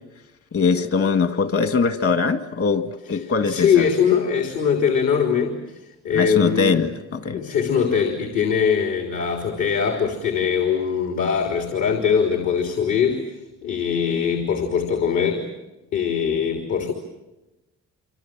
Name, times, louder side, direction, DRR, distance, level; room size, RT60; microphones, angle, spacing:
voice 1, 0.5-3.9 6.1-7.4, left 5 dB, 50° left, 2.2 m, -22 dB
voice 2, 3.1-5.8 6.0-6.9 7.3-13.3 13.6-15.5 15.9-16.9, left 7 dB, 75° left, 3.4 m, -22 dB
26.5 x 26.0 x 7.6 m
cardioid pair, 90°, 30 cm